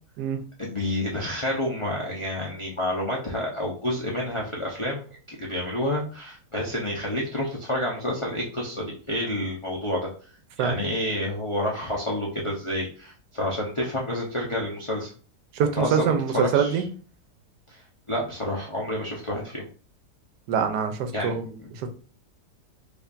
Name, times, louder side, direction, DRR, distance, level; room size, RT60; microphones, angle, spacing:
voice 1, 0.6-10.1 10.6-15.1 15.7-16.8 17.7-17.8 18.1-19.6 21.1-21.7, left 1 dB, 55° left, 0.3 m, -29 dB
voice 2, 15.5-16.8 20.5-21.4 21.8-21.9, right 7 dB, 85° right, 1.2 m, -24 dB
5.0 x 2.5 x 2.5 m
omnidirectional pair, 1.7 m